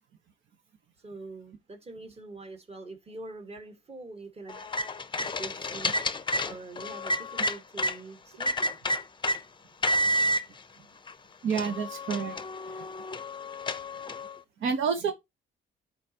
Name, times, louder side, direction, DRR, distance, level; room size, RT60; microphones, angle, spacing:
voice 1, 1.0-4.6 5.4-5.9 6.4-8.8, right 2 dB, 30° right, 1.6 m, -44 dB
sound 1, 4.5-8.0 8.4-9.4 9.8-10.4 11.1-11.2 11.5-14.3, left 1 dB, 25° left, 0.6 m, -30 dB
voice 2, 11.4-12.4 12.8-12.9 14.6-15.1, right 6 dB, 75° right, 1.1 m, -28 dB
12.5 x 4.2 x 2.8 m
cardioid pair, 90°, 20 cm